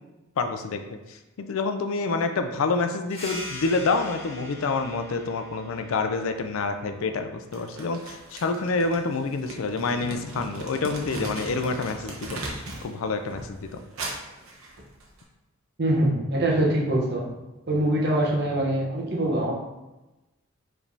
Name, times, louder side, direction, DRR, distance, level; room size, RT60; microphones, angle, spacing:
voice 1, 0.4-12.4 12.8-13.8, left 4 dB, 75° left, 7 dB, 0.4 m, -27 dB
sound 1, 3.1-8.3, left 1 dB, 30° left, 1.2 m, -42 dB
Crumpling crinkling, 7.5-12.9 13.2-15.2, right 1 dB, 85° right, 0.9 m, -38 dB
voice 2, 15.8-17.2 17.7-19.5, right 1 dB, 50° right, -2 dB, 0.9 m, -23 dB
5.0 x 3.3 x 2.7 m, 1.0 s
head